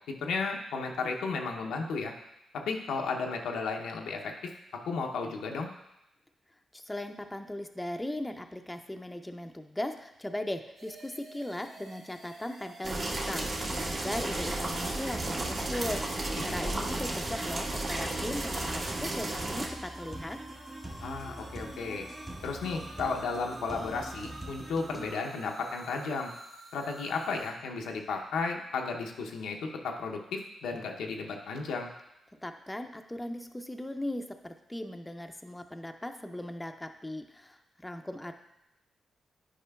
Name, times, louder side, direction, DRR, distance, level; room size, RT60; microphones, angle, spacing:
voice 1, 0.1-2.1 2.5-4.5 4.9-5.7 16.6-16.8 21.0-22.1 22.4-26.3 26.7-31.9, left 4 dB, 85° left, 2 dB, 0.6 m, -34 dB
voice 2, 6.7-20.4 32.3-38.3, left 1 dB, 15° left, 6 dB, 0.5 m, -38 dB
sound 1, 10.8-27.5, right 2 dB, 75° right, 1.5 m, -50 dB
sound 2, 12.8-19.7, right 2 dB, 50° right, 1.4 m, -33 dB
sound 3, 13.7-25.1, right 1 dB, 25° right, 1.5 m, -44 dB
9.9 x 5.0 x 2.3 m, 0.88 s
supercardioid pair, 55°, 0 cm